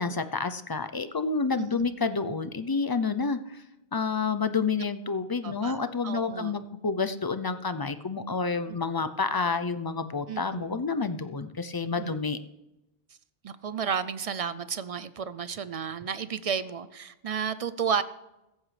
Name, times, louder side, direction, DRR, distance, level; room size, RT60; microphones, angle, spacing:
voice 1, 0.0-3.6 3.9-12.4, left 4 dB, 35° left, 10 dB, 0.3 m, -29 dB
voice 2, 1.6-1.9 5.4-6.5 8.7-8.8 10.3-10.8 12.0-12.2 13.4-18.0, right 7 dB, 50° right, 15 dB, 0.4 m, -32 dB
16.0 x 14.5 x 3.3 m, 0.94 s
omnidirectional pair, 1.0 m